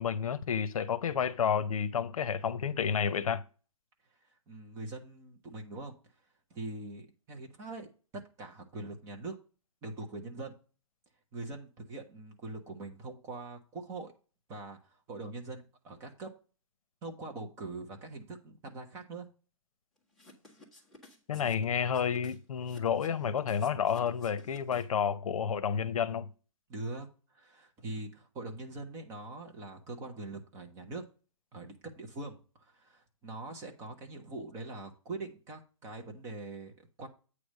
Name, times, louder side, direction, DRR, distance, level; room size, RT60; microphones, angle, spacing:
voice 1, 0.0-3.4 21.3-26.3, left 7 dB, 75° left, 0.8 m, -30 dB
voice 2, 4.5-5.9 6.5-7.9 8.4-9.3 9.8-10.5 11.3-14.1 14.5-16.3 17.0-19.3 26.7-31.0 31.5-37.1, right 2 dB, 15° right, 0.9 m, -43 dB
sound 1, 20.1-25.1, left 2 dB, ahead, 1.2 m, -55 dB
8.6 x 3.3 x 6.4 m
hypercardioid pair, 170°, 18 cm